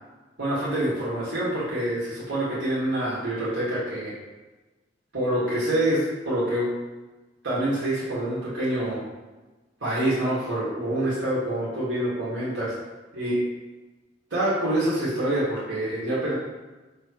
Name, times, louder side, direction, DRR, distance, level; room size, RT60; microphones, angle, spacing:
voice 1, 0.4-4.1 5.1-6.7 7.4-9.0 9.8-12.7 13.2-13.4 14.3-16.3, right 1 dB, 80° right, -9 dB, 2.0 m, -26 dB
6.0 x 3.4 x 4.8 m, 1.2 s
head